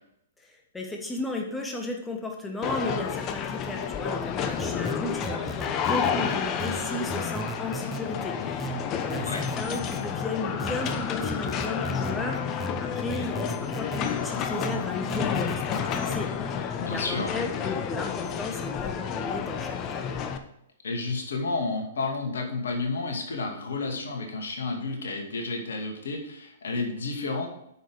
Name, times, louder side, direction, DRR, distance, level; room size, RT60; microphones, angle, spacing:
voice 1, 0.4-20.0, left 2 dB, 10° left, 1 dB, 1.3 m, -35 dB
sound 1, 2.6-20.4, left 7 dB, 30° left, 0.9 m, -30 dB
sound 2, 4.6-6.2 6.6-8.0 8.6-10.0 10.6-12.2 12.6-14.0 14.6-16.0, right 5 dB, 10° right, 1.0 m, -37 dB
voice 2, 16.8-17.4 20.8-27.5, left 3 dB, 70° left, 2 dB, 2.3 m, -31 dB
9.2 x 6.5 x 5.1 m, 0.81 s
figure-of-eight pair, 115°, 0 cm